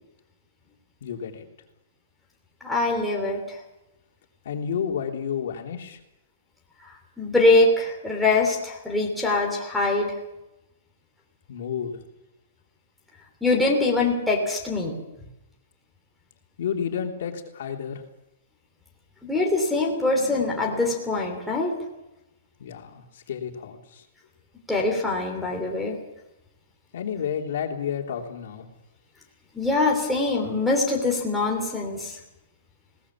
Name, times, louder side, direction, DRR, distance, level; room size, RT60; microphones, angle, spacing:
voice 1, 1.0-1.4 4.4-6.0 11.5-12.0 16.6-18.0 22.6-24.0 26.9-28.6, left 7 dB, 55° left, 2 dB, 3.2 m, -31 dB
voice 2, 2.6-3.6 7.2-10.1 13.4-14.9 19.2-21.7 24.7-26.0 29.5-32.2, left 2 dB, ahead, -3 dB, 3.1 m, -23 dB
21.0 x 18.5 x 7.3 m, 0.93 s
hypercardioid pair, 175°, 0 cm